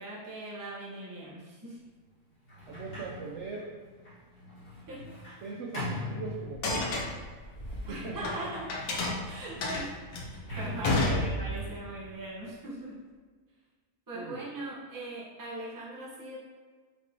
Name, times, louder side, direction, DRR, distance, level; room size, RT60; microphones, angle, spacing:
voice 1, 0.0-1.9 4.9-5.2 7.8-8.7 9.2-13.1 14.1-16.4, right 1 dB, 20° right, -5 dB, 0.6 m, -40 dB
Sliding door, 2.4-6.9 7.6-12.4, left 1 dB, 30° left, 1.3 m, -43 dB
voice 2, 2.7-3.7 5.4-7.0 7.9-8.3 9.5-9.7 11.1-11.3 14.1-14.4, right 4 dB, 70° right, -2 dB, 0.7 m, -40 dB
sound 1, 6.5-8.4 8.7-11.8, left 2 dB, 70° left, 1.1 m, -31 dB
5.1 x 2.9 x 2.6 m, 1.5 s
omnidirectional pair, 1.6 m